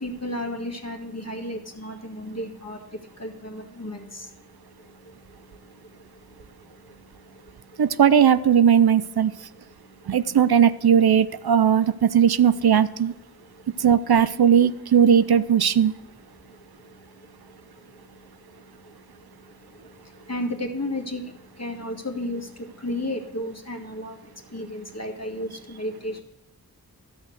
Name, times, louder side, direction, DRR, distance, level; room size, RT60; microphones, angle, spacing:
voice 1, 0.0-4.4 4.8-7.8 9.8-10.2 13.4-13.8 16.4-26.2, left 1 dB, 40° left, 2 dB, 1.8 m, -35 dB
voice 2, 7.8-9.3 10.1-13.1 13.8-15.9, right 8 dB, 75° right, 14 dB, 0.5 m, -18 dB
12.5 x 6.3 x 6.4 m, 0.98 s
wide cardioid pair, 40°, 38 cm